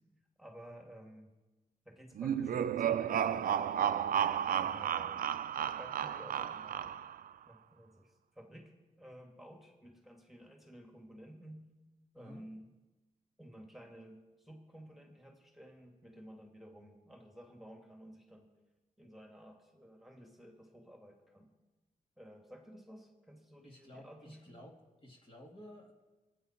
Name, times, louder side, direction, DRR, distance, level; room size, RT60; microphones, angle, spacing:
voice 1, 0.4-1.3 1.9-3.6 4.5-5.2 5.8-7.1 7.5-11.6 12.1-12.7 13.4-18.5 19.0-21.5 22.2-24.7, equal, ahead, 1 dB, 2.4 m, -53 dB
sound 1, 2.2-7.3, right 9 dB, 85° right, 0.5 m, -33 dB
voice 2, 12.2-12.5 23.6-24.8 25.0-25.9, left 1 dB, 40° left, 0 dB, 2.8 m, -53 dB
25.5 x 9.4 x 4.5 m, 1.2 s
cardioid pair, 80°, 14 cm